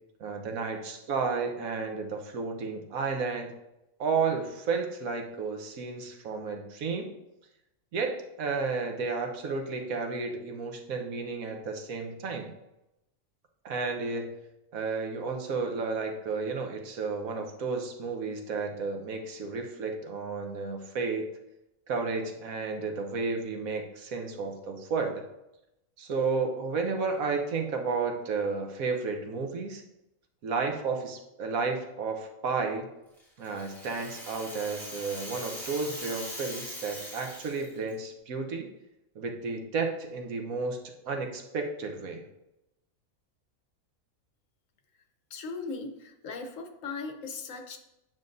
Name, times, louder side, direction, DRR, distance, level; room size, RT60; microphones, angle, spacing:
voice 1, 0.2-3.5 4.0-7.1 7.9-12.5 13.6-14.3 14.7-21.3 21.9-25.2 26.0-29.8 30.4-32.9 33.4-38.7 39.1-42.2, right 4 dB, 90° right, 3 dB, 1.4 m, -32 dB
Rattle (instrument), 33.2-37.9, equal, ahead, 2.2 m, -41 dB
voice 2, 45.3-47.8, left 4 dB, 70° left, 5 dB, 1.2 m, -38 dB
9.0 x 5.7 x 2.6 m, 0.90 s
omnidirectional pair, 1.4 m